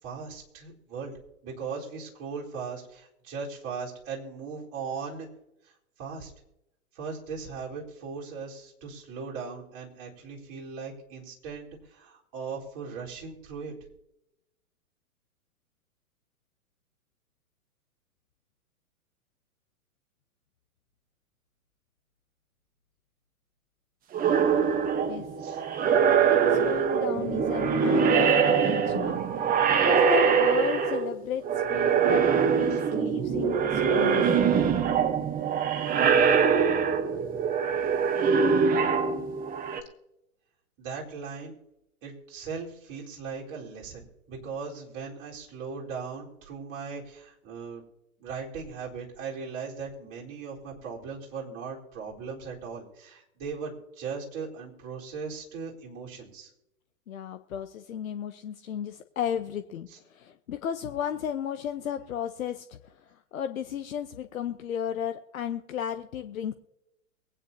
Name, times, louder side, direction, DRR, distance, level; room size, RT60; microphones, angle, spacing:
voice 1, 0.0-1.1 1.4-5.3 5.6-5.7 6.0-6.3 6.9-13.7 25.4-25.6 32.7-32.8 40.8-41.6 42.0-47.8 48.2-56.5 59.9-60.0, right 5 dB, 40° right, -3 dB, 4.2 m, -38 dB
sound 1, 24.1-31.2 31.4-39.8, right 6 dB, 20° right, 1.1 m, -23 dB
voice 2, 26.0-32.2 32.5-34.3 57.1-66.5, left 9 dB, 70° left, 8 dB, 1.0 m, -34 dB
23.5 x 9.5 x 2.8 m, 0.87 s
hypercardioid pair, 110°, 42 cm